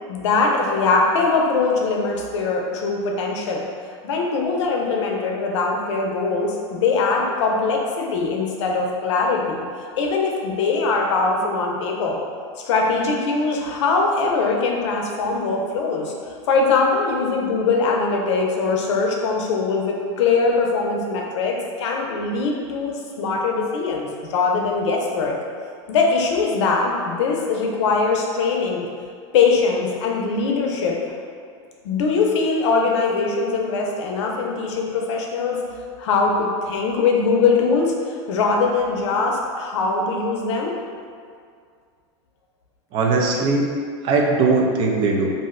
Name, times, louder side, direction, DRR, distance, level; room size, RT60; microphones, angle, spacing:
voice 1, 0.1-3.7 4.0-9.6 10.0-12.2 12.6-16.1 16.5-25.4 25.9-28.9 29.3-31.0 31.8-35.6 36.0-37.9 38.3-40.7, left 4 dB, 80° left, 0 dB, 0.6 m, -21 dB
voice 2, 42.9-43.7 44.0-45.3, right 3 dB, 35° right, 0 dB, 0.4 m, -19 dB
2.5 x 2.1 x 3.7 m, 2.1 s
supercardioid pair, 150°, 15 cm